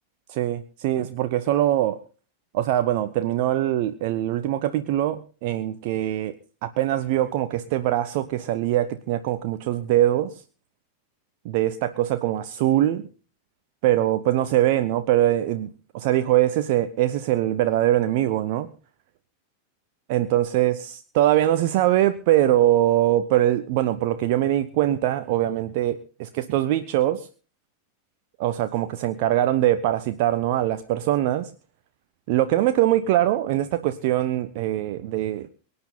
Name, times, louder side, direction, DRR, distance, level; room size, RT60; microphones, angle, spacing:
voice 1, 0.3-2.0 2.5-6.3 6.6-10.3 11.4-13.0 13.8-18.7 20.1-20.7 21.1-27.3 28.4-31.5 32.3-35.5, right 13 dB, 50° right, 11 dB, 0.8 m, -22 dB
23.5 x 9.8 x 4.0 m, 0.38 s
figure-of-eight pair, 90°, 0 cm